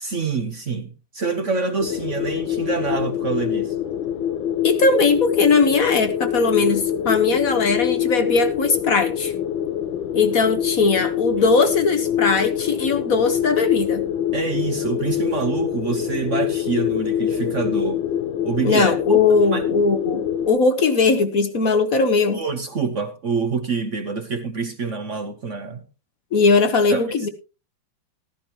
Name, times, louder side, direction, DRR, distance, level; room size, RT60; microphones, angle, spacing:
voice 1, 0.0-3.8 14.3-18.0 18.4-19.2 19.5-19.6 22.3-25.8 26.9-27.0, right 5 dB, 50° right, 1.1 m, -26 dB
sound 1, 1.8-20.5, left 10 dB, 85° left, 1.5 m, -25 dB
voice 2, 4.6-9.3 10.1-14.0 18.6-22.4 26.3-27.3, left 4 dB, 55° left, 1.3 m, -19 dB
14.5 x 13.0 x 2.9 m
omnidirectional pair, 2.1 m